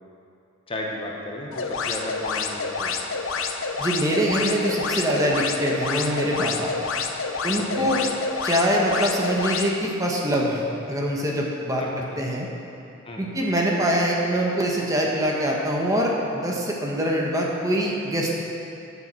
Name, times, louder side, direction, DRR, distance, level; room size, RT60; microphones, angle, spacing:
voice 1, 0.7-3.0 7.6-7.9 11.8-11.9 13.1-13.3, left 1 dB, 25° left, -1 dB, 1.1 m, -34 dB
sound 1, 1.5-9.7, left 4 dB, 70° left, 0.8 m, -28 dB
voice 2, 3.8-6.7 7.4-8.0 8.4-12.5 13.2-18.3, equal, 15° right, -2 dB, 1.2 m, -24 dB
12.5 x 7.2 x 6.2 m, 2.7 s
head